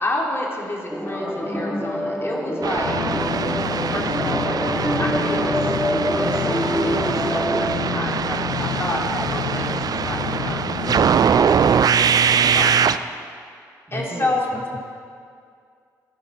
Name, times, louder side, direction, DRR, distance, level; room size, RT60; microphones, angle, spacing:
voice 1, 0.0-3.0 3.7-5.7 6.0-13.0 13.9-14.5, left 1 dB, 30° left, -2 dB, 3.0 m, -30 dB
sound 1, 0.9-7.7, equal, ahead, 1.9 m, -25 dB
sound 2, 2.6-13.0, right 7 dB, 50° right, 0.4 m, -22 dB
sound 3, 2.8-11.1, left 11 dB, 80° left, 0.4 m, -30 dB
voice 2, 4.2-5.0 13.9-14.8, right 1 dB, 30° right, 2 dB, 1.4 m, -36 dB
14.5 x 6.6 x 5.8 m, 2.3 s
hypercardioid pair, 40°, 8 cm